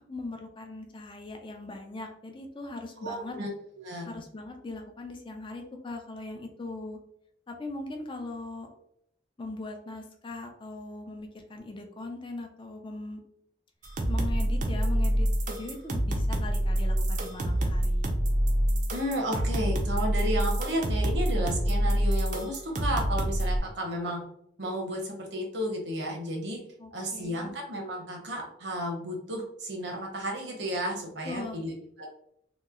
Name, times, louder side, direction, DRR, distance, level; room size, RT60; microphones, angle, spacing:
voice 1, 0.1-3.4 4.1-7.0 7.5-8.7 9.4-13.2 14.1-18.1 26.8-27.5 31.2-31.6, left 2 dB, 30° left, 3 dB, 0.5 m, -40 dB
voice 2, 3.0-3.5 3.8-4.1 18.9-24.2 24.6-26.6 26.9-32.1, equal, 70° right, 1 dB, 0.9 m, -33 dB
sound 1, 13.8-23.6, equal, 45° right, 0.5 m, -26 dB
2.9 x 2.0 x 3.6 m, 0.71 s
head